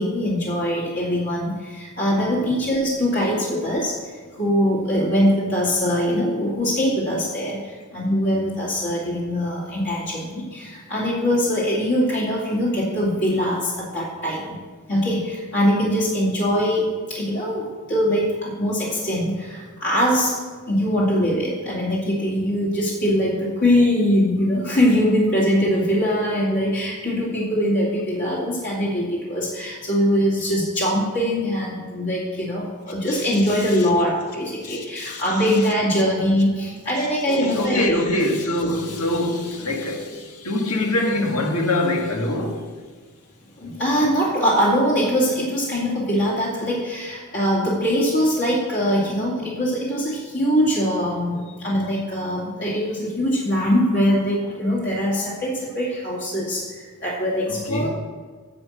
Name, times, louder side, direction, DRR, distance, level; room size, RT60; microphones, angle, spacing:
voice 1, 0.0-3.9 4.3-7.6 7.9-14.5 14.9-20.4 20.7-38.0 43.6-56.6 57.0-57.9, equal, 55° left, 2.5 m, -22 dB
voice 2, 33.1-33.8 34.6-35.4 37.3-42.7 44.0-44.1 57.5-57.9, left 1 dB, 90° left, 1.7 m, -25 dB
10.5 x 7.3 x 6.4 m
head